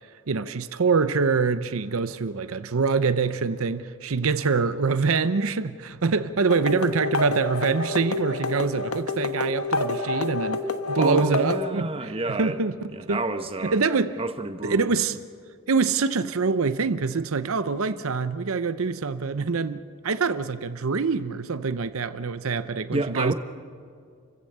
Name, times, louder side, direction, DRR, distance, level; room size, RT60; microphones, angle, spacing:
voice 1, 0.3-10.6 10.9-12.8 13.1-13.2 13.6-14.2 14.6-15.2 15.7-23.3, right 4 dB, 70° right, 0.7 m, -25 dB
sound 1, 6.5-11.7, left 3 dB, 80° left, 1.2 m, -28 dB
voice 2, 11.0-12.6 12.9-13.8 14.2-15.0 22.9-23.3, right 2 dB, 25° right, 0.9 m, -29 dB
28.5 x 16.0 x 6.7 m
head